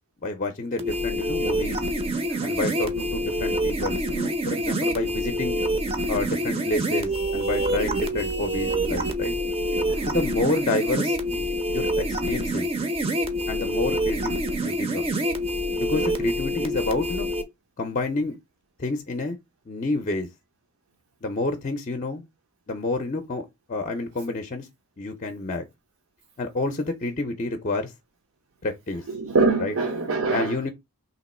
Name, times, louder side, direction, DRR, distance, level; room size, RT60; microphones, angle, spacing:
voice 1, 0.2-1.8 2.4-5.6 6.1-9.3 10.1-12.7 13.5-15.0 15.8-17.3 17.8-18.4 18.8-19.4 19.7-20.3 21.2-22.2 22.7-24.7 25.0-25.6 26.4-27.9 28.6-29.0 29.6-29.7 30.3-30.7, left 2 dB, 35° left, 0.5 m, -29 dB
sound 1, 0.8-17.4, equal, 25° right, 0.5 m, -26 dB
voice 2, 9.7-10.1 15.9-16.0 29.1-30.6, right 3 dB, 75° right, 0.7 m, -24 dB
3.0 x 2.9 x 4.1 m
head